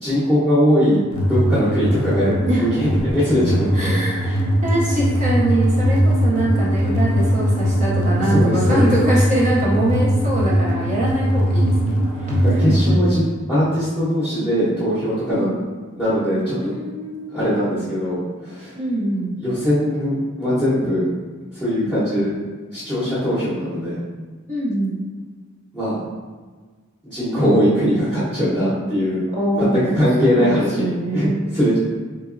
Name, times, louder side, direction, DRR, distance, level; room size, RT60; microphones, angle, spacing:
voice 1, 0.0-4.4 8.2-8.9 12.3-13.2 13.5-15.6 16.0-16.7 17.3-18.8 19.4-21.1 21.5-22.4 22.7-24.0 25.7-26.0 27.0-29.2 29.5-31.8, equal, ahead, -13 dB, 0.8 m, -20 dB
sound 1, 1.1-13.0, equal, 75° left, 0.5 m, -20 dB
voice 2, 3.7-4.3 4.6-12.3 12.9-13.0 15.3-15.5 16.6-17.4 18.7-19.3 21.8-21.9 24.5-25.0 29.3-31.4, right 1 dB, 35° right, -6 dB, 0.5 m, -23 dB
3.9 x 2.8 x 2.5 m, 1.4 s
head